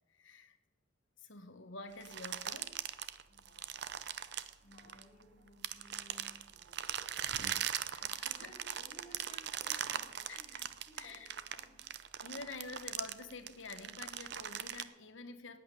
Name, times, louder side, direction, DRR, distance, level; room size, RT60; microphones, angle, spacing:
voice 1, 0.1-0.6 1.2-2.8 7.9-8.5 10.3-10.6 11.0-11.3 12.2-15.6, left 3 dB, 75° left, 1.4 m, -48 dB
sound 1, 2.0-5.2 5.6-14.8, right 10 dB, 55° right, 0.6 m, -40 dB
voice 2, 3.3-11.9, equal, 35° left, 2.9 m, -60 dB
11.0 x 8.8 x 9.9 m
head